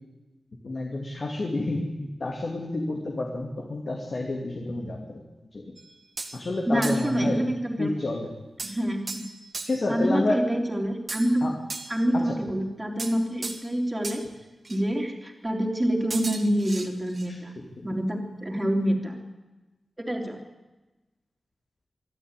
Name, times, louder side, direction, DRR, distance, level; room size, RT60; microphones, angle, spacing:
voice 1, 0.6-5.2 5.5-5.7 6.3-7.4 7.8-8.3 9.7-10.4 11.4-11.5 12.1-12.4 17.3-17.7, left 2 dB, 50° left, 1 dB, 2.5 m, -29 dB
sound 1, 5.8-6.4 6.8-7.2 8.6-9.9 11.1-12.1 13.0-13.7 14.0-14.2 14.6-14.8 16.1-17.3, right 3 dB, 40° right, 1.9 m, -37 dB
voice 2, 6.7-7.9 8.6-9.2 9.9-11.4 11.9-14.2 14.7-17.5 17.8-19.1 20.0-20.4, equal, 15° right, 2 dB, 3.2 m, -26 dB
24.0 x 12.5 x 9.0 m, 1.1 s
wide cardioid pair, 130°, 0 cm